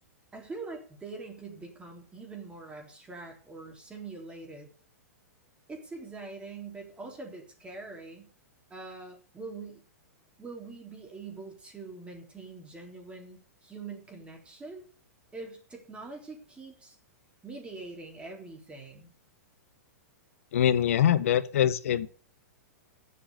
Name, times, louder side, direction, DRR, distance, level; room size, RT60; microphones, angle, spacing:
voice 1, 0.3-4.7 5.7-8.3 8.7-9.8 10.4-14.9 15.3-17.0 17.4-19.1, right 3 dB, 15° right, 3.6 m, -43 dB
voice 2, 20.5-22.1, left 10 dB, 65° left, 1.0 m, -23 dB
10.0 x 7.6 x 7.9 m
hypercardioid pair, 110°, 8 cm